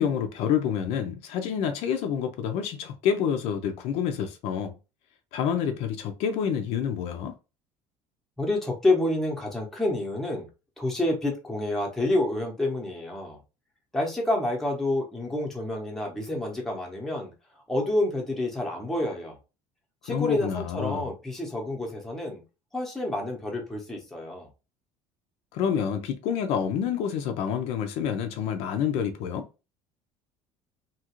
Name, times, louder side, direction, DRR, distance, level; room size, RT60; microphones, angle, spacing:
voice 1, 0.0-4.8 5.3-7.3 20.1-21.0 25.5-29.5, left 8 dB, 60° left, 0.4 m, -28 dB
voice 2, 8.4-10.5 10.8-13.4 13.9-17.3 17.7-19.4 20.0-22.4 22.7-24.5, left 1 dB, 5° left, 0.7 m, -28 dB
2.8 x 2.4 x 2.9 m
cardioid pair, 170°, 12 cm